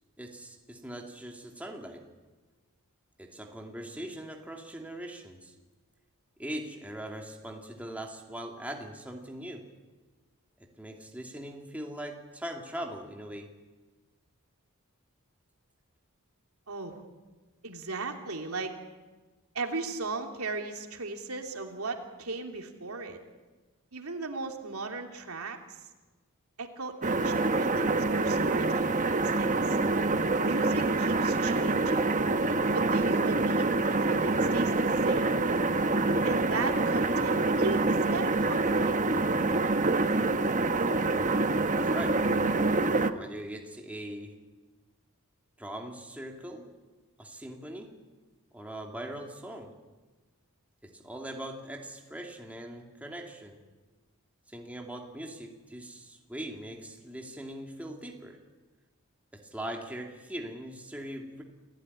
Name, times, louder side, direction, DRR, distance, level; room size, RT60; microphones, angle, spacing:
voice 1, 0.2-2.0 3.2-5.5 6.4-9.7 10.6-13.5 41.7-42.2 43.1-44.4 45.6-46.7 47.2-47.9 48.5-49.7 50.8-53.6 54.5-58.4 59.3-61.4, right 1 dB, 5° right, 1 dB, 2.6 m, -41 dB
voice 2, 17.6-18.8 19.5-23.2 23.9-25.8 26.6-29.8 30.4-32.1 32.7-35.4 36.2-39.0, right 3 dB, 80° right, 3 dB, 3.0 m, -37 dB
sound 1, 27.0-43.1, right 3 dB, 35° right, 1.0 m, -26 dB
28.5 x 17.0 x 9.8 m, 1.3 s
head